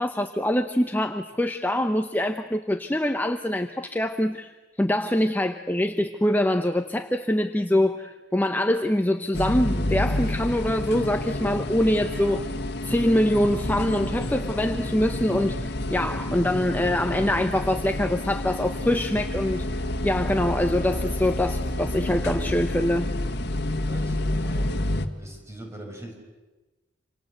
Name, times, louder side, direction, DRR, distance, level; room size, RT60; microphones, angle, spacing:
voice 1, 0.0-4.5 4.8-12.5 12.8-23.1, left 1 dB, 10° left, 6 dB, 0.9 m, -24 dB
sound 1, 9.3-25.1, left 1 dB, 60° left, 1.8 m, -29 dB
voice 2, 23.4-24.8 25.2-26.1, right 1 dB, 15° right, 2 dB, 5.9 m, -42 dB
28.0 x 27.0 x 8.0 m, 1.2 s
head